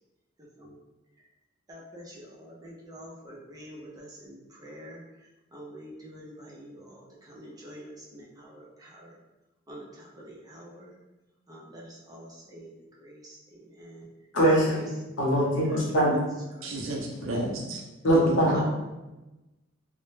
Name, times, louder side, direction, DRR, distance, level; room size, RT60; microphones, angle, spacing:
voice 1, 1.7-5.0 5.5-9.2 9.7-10.9 11.5-12.7 13.0-14.1 14.7-14.9 15.7-16.0 16.6-16.7 18.5-18.6, equal, 20° right, -4 dB, 0.4 m, -46 dB
voice 2, 14.3-14.8 15.2-16.2 18.0-18.6, right 1 dB, 65° left, -4 dB, 0.7 m, -22 dB
voice 3, 16.6-17.8 18.1-18.6, right 1 dB, 80° right, 0 dB, 0.5 m, -32 dB
2.1 x 2.0 x 3.1 m, 1.0 s
head